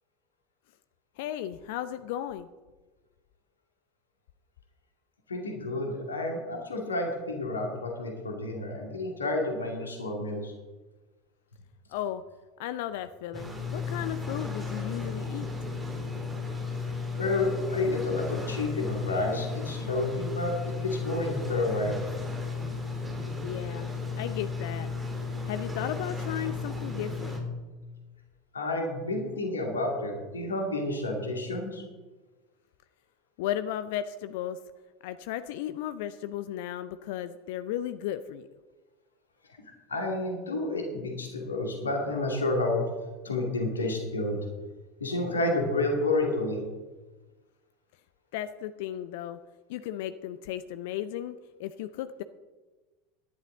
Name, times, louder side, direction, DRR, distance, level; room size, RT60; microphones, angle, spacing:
voice 1, 1.2-2.5 11.9-12.2 12.6-15.5 23.4-23.9 24.2-24.9 25.5-27.4 33.4-34.6 35.0-38.5 48.3-49.4 49.7-52.2, left 11 dB, 55° left, 13 dB, 0.5 m, -35 dB
voice 2, 5.3-10.5 17.2-22.0 28.5-31.8 39.9-42.8 43.2-44.5 45.0-46.6, left 2 dB, 75° left, 1 dB, 2.3 m, -30 dB
sound 1, 13.3-27.4, left 4 dB, 15° right, 3.8 m, -34 dB
17.5 x 11.5 x 3.8 m, 1.3 s
figure-of-eight pair, 75°, 0 cm